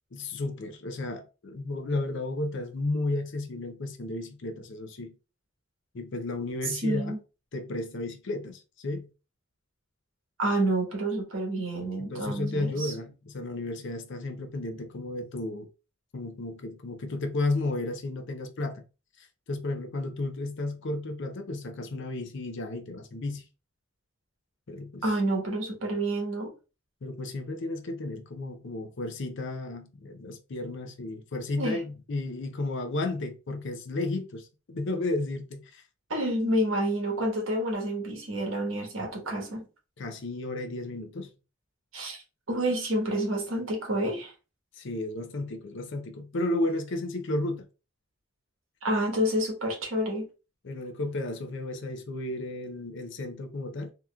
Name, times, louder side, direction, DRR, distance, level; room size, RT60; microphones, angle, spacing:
voice 1, 0.1-5.2 5.9-7.1 7.5-9.1 12.1-15.7 16.1-18.8 19.2-23.4 24.7-25.1 27.0-35.8 40.0-41.3 44.7-47.7 50.6-53.9, left 2 dB, 60° left, 0.6 m, -33 dB
voice 2, 6.7-7.2 10.4-12.9 25.0-26.5 31.6-31.8 36.1-39.6 41.9-44.3 48.8-50.3, right 1 dB, 70° right, 1.2 m, -29 dB
3.6 x 2.9 x 2.3 m
head